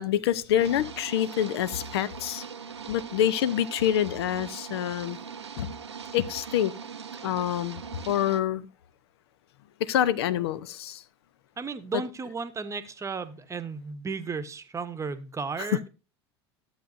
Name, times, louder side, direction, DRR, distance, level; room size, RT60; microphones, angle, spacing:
voice 1, 0.0-2.4 2.9-5.2 5.6-5.7 6.1-6.7 7.2-8.7 9.8-11.0 11.9-12.0 15.6-15.7, left 11 dB, 70° left, 0.5 m, -26 dB
sound 1, 0.6-8.4, right 6 dB, 90° right, 0.6 m, -41 dB
voice 2, 11.6-15.9, right 5 dB, 20° right, 0.9 m, -34 dB
13.0 x 7.9 x 2.6 m
hypercardioid pair, 75°, 14 cm